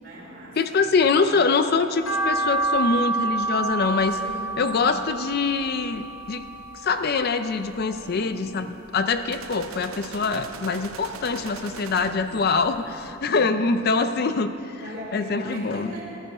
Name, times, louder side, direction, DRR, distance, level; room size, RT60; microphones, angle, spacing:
voice 1, 0.0-0.9 1.2-1.5 4.1-4.6 8.0-8.5 11.7-12.7 13.2-13.6 14.8-16.3, equal, 45° right, -5 dB, 3.8 m, -39 dB
voice 2, 0.6-4.2 4.6-6.5 6.8-8.7 8.9-14.5 15.1-15.9, left 4 dB, 45° left, 10 dB, 0.4 m, -24 dB
sound 1, 2.0-8.4 8.7-9.9 10.2-11.6 12.0-12.1 12.6-12.7 12.9-13.0, right 3 dB, 75° left, 1.9 m, -29 dB
sound 2, 9.3-12.5, right 5 dB, 85° right, 0.7 m, -40 dB
15.0 x 11.5 x 4.9 m, 2.6 s
head